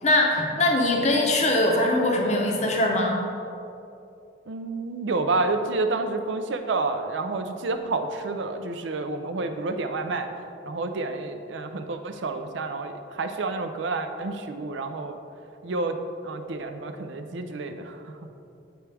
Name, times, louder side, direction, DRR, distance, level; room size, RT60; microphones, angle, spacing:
voice 1, 0.0-3.2, left 1 dB, 35° left, 0 dB, 0.7 m, -22 dB
voice 2, 4.5-10.3 10.7-15.2 15.6-18.3, right 3 dB, 70° right, 7 dB, 0.5 m, -29 dB
8.8 x 4.6 x 3.3 m, 2.7 s
head